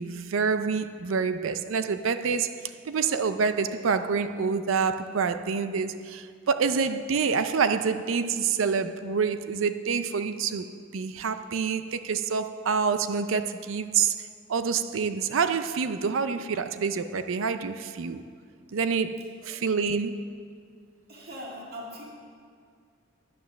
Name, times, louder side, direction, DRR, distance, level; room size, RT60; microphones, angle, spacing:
voice 1, 0.0-18.2 18.7-20.2, right 5 dB, 80° right, 10 dB, 0.5 m, -27 dB
voice 2, 21.1-22.0, equal, 50° right, -3 dB, 1.9 m, -40 dB
9.4 x 9.2 x 6.4 m, 2.2 s
head